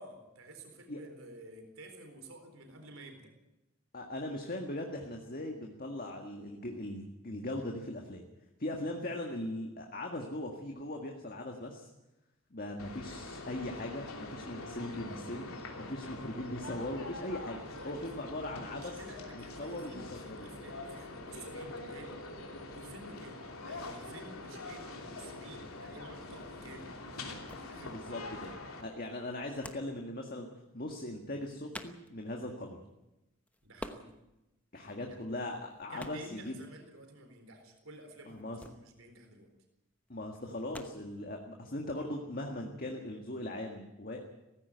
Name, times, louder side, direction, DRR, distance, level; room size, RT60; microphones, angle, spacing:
voice 1, 0.0-3.3 17.7-18.0 18.6-22.2 22.7-27.0 27.7-28.0 33.6-34.2 34.8-35.2 35.9-39.5, right 1 dB, 75° right, 5 dB, 4.1 m, -51 dB
voice 2, 3.9-8.2 8.6-11.9 12.5-15.5 15.8-17.6 17.8-19.0 19.3-20.5 27.8-28.5 28.8-30.5 30.7-32.8 34.7-36.6 38.3-38.6 40.1-44.2, left 1 dB, 40° left, 2 dB, 1.8 m, -39 dB
sound 1, 12.8-28.8, left 2 dB, 80° left, 3.2 m, -44 dB
sound 2, 27.1-41.9, left 1 dB, 5° left, 1.0 m, -52 dB
18.0 x 15.5 x 9.4 m, 0.95 s
head